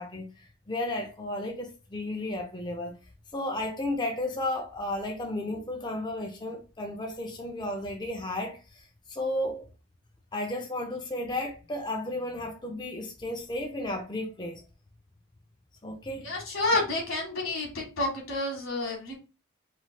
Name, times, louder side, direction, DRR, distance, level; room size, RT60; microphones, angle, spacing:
voice 1, 0.0-3.0 3.3-8.6 9.1-9.6 10.3-14.6 15.8-16.3, left 1 dB, 20° left, 0.4 m, -33 dB
voice 2, 16.2-19.1, left 2 dB, 85° left, 1.3 m, -29 dB
3.2 x 3.0 x 2.2 m
head